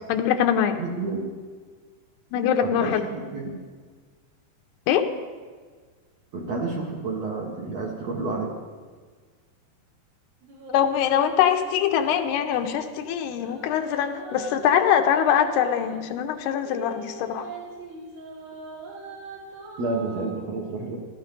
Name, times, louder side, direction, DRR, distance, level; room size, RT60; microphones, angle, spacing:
voice 1, 0.1-0.8 2.3-3.1 4.9-5.0 10.7-17.5, left 9 dB, 80° left, 6 dB, 2.8 m, -23 dB
voice 2, 0.7-1.3 2.6-3.6 6.3-8.5 19.8-21.0, right 3 dB, 55° right, -1 dB, 2.1 m, -30 dB
sound 1, 10.4-12.8 13.3-16.0 16.6-20.3, right 3 dB, 85° right, 5.2 m, -41 dB
15.0 x 13.5 x 5.3 m, 1.5 s
omnidirectional pair, 4.7 m